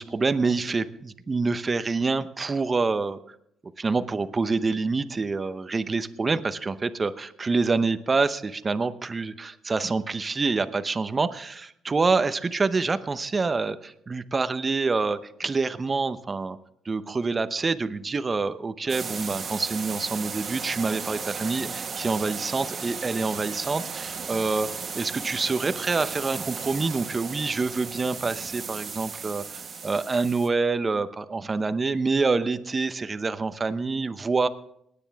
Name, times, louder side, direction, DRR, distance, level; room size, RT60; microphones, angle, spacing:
voice 1, 0.0-3.2 3.8-16.6 16.8-24.7 24.9-34.5, right 4 dB, 30° right, 12 dB, 0.8 m, -26 dB
sound 1, 18.9-30.5, right 5 dB, 45° right, 1.6 m, -35 dB
21.0 x 9.8 x 3.5 m, 0.73 s
cardioid pair, 90°, 0 cm